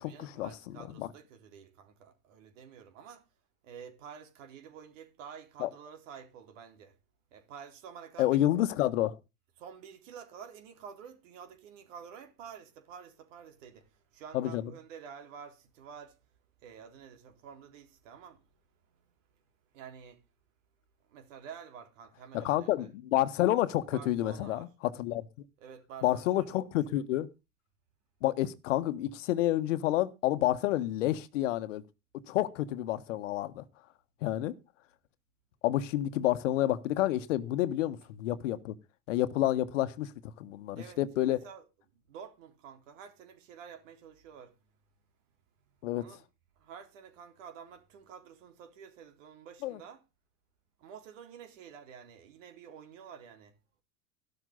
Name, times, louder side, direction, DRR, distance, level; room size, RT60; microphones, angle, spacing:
voice 1, 0.0-3.3 3.6-6.9 7.3-8.5 9.6-16.2 16.6-18.5 18.9-19.1 19.7-20.2 21.1-22.9 23.9-24.7 25.6-26.5 26.9-27.0 40.7-41.7 41.9-44.6 45.9-46.2 46.6-50.0 50.8-53.6, right 7 dB, 60° right, 3.9 m, -50 dB
voice 2, 8.2-9.2 14.3-14.6 22.3-25.3 26.0-27.3 28.2-31.8 32.3-33.6 34.2-34.5 35.6-38.7 39.1-40.1 40.4-41.4 45.8-46.0 49.6-49.8, left 14 dB, 60° left, 1.5 m, -29 dB
14.5 x 12.5 x 4.0 m
figure-of-eight pair, 85°, 43 cm